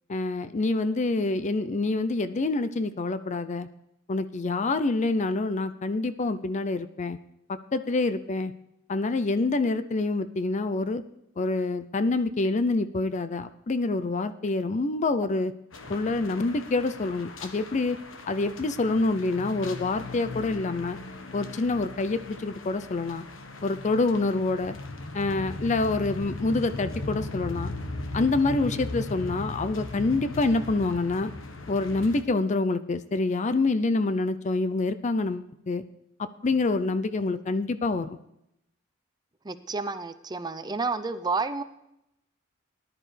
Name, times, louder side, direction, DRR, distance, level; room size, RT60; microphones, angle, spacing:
voice 1, 0.1-3.7 4.1-7.2 7.5-8.5 8.9-11.0 11.4-15.5 15.9-18.0 18.3-21.0 21.3-23.3 23.6-24.8 25.1-27.7 28.1-31.3 31.7-35.8 36.2-38.2, left 3 dB, 35° left, 12 dB, 0.5 m, -26 dB
sound 1, 15.7-32.2, left 2 dB, 75° left, 1.2 m, -38 dB
voice 2, 39.4-41.6, right 4 dB, 20° right, 12 dB, 0.5 m, -30 dB
19.0 x 11.0 x 3.3 m, 0.82 s
head